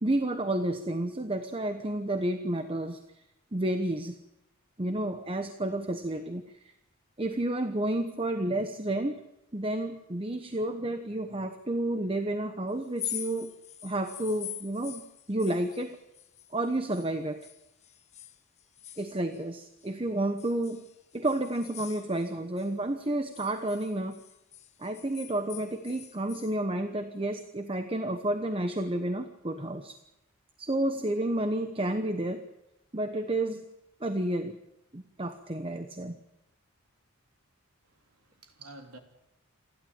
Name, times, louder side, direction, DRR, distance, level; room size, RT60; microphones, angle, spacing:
voice 1, 0.0-3.0 3.5-4.2 4.8-6.7 7.2-9.2 9.5-13.5 13.8-15.0 15.3-16.0 16.5-17.5 19.0-20.9 21.1-24.2 24.8-30.0 30.6-32.4 32.9-33.6 34.0-34.6 34.9-36.2, right 1 dB, 25° right, 8 dB, 1.0 m, -31 dB
sound 1, 12.8-17.1 17.4-19.9 20.4-22.7 23.0-26.5, left 12 dB, 30° left, 1.1 m, -44 dB
voice 2, 37.8-39.0, right 2 dB, 80° right, 4 dB, 3.3 m, -51 dB
28.0 x 12.0 x 8.8 m, 0.88 s
head